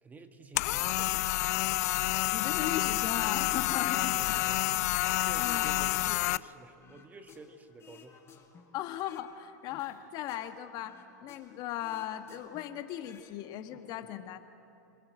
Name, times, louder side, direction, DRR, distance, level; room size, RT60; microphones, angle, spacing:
voice 1, 0.0-1.8 4.1-4.7 5.2-8.2, right 3 dB, 15° right, 7 dB, 1.7 m, -50 dB
sound 1, 0.6-6.4, left 18 dB, 60° left, 0.5 m, -29 dB
voice 2, 2.3-4.6 5.4-5.7 8.7-14.4, left 11 dB, 45° left, 8 dB, 1.6 m, -37 dB
sound 2, 6.3-6.5 6.8-9.3 9.7-11.5 11.8-13.3 13.6-13.8, left 7 dB, 25° left, 4.8 m, -57 dB
27.5 x 20.5 x 7.7 m, 2.8 s
hypercardioid pair, 115°, 10 cm